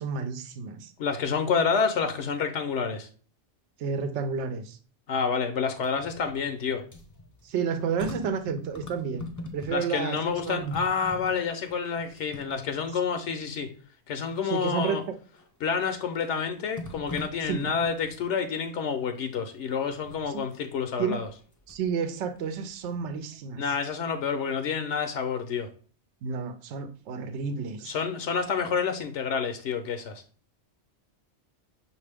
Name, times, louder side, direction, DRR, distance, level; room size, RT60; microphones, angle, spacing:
voice 1, 0.0-0.9 3.8-4.8 7.4-10.2 10.4-10.8 14.4-15.0 17.4-17.7 20.3-20.4 21.0-21.2 21.7-23.6 26.2-28.0, right 6 dB, 75° right, 9 dB, 0.9 m, -31 dB
voice 2, 1.0-3.1 5.1-6.8 9.7-13.7 14.1-15.0 15.6-21.3 23.6-25.7 27.9-30.2, left 6 dB, 75° left, 7 dB, 0.9 m, -28 dB
sound 1, 5.7-10.0 10.2-13.0 13.6-13.7 15.3-15.8 16.7-18.3 19.9-20.3 21.2-21.9 22.3-23.3 23.6-23.7, left 2 dB, 20° left, 0.5 m, -43 dB
5.8 x 2.6 x 3.3 m, 0.41 s
omnidirectional pair, 1.2 m